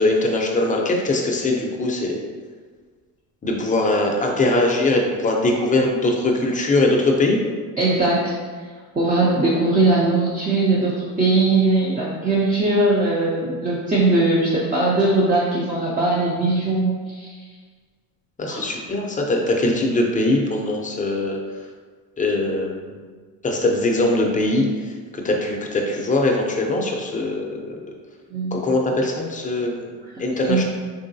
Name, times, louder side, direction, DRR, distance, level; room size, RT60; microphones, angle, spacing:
voice 1, 0.0-2.2 3.4-7.4 18.4-21.4 22.2-23.0 23.4-27.8 28.5-29.9 30.2-30.6, left 2 dB, 20° left, 0 dB, 0.5 m, -21 dB
voice 2, 7.8-8.3 9.0-17.3 18.5-18.6 28.3-28.6 30.5-30.6, right 2 dB, 20° right, -5 dB, 0.6 m, -20 dB
3.8 x 3.0 x 2.7 m, 1.5 s
cardioid pair, 100°, 37 cm